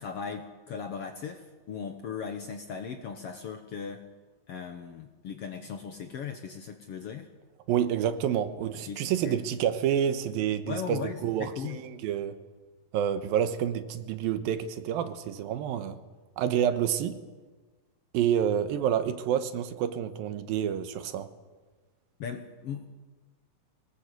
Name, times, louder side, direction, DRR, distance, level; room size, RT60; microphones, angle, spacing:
voice 1, 0.0-4.1 4.5-7.3 8.9-9.4 10.7-11.8 22.2-22.9, left 6 dB, 65° left, 6 dB, 1.6 m, -38 dB
voice 2, 7.7-12.4 12.9-16.0 16.4-17.2 18.1-21.3, right 9 dB, 85° right, 11 dB, 2.9 m, -28 dB
23.0 x 18.5 x 8.2 m, 1.3 s
omnidirectional pair, 4.1 m